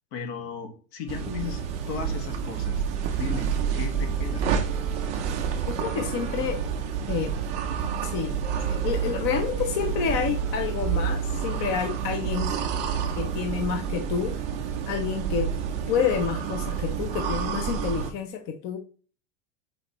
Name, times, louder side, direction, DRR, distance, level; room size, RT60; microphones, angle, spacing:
voice 1, 0.1-2.8 3.1-4.4, left 6 dB, 60° left, 6 dB, 1.6 m, -36 dB
Wind instrument woodwind instrument, 1.0-6.7 7.4-13.9, right 1 dB, ahead, 1.0 m, -49 dB
sound 1, 1.1-18.1, right 7 dB, 20° right, 0.3 m, -29 dB
voice 2, 5.7-6.6 7.1-7.3 8.0-8.4 8.7-12.5 13.2-14.4 14.9-15.5 15.9-18.8, left 7 dB, 30° left, 5 dB, 0.5 m, -29 dB
7.7 x 4.1 x 3.0 m, 0.40 s
supercardioid pair, 155°, 38 cm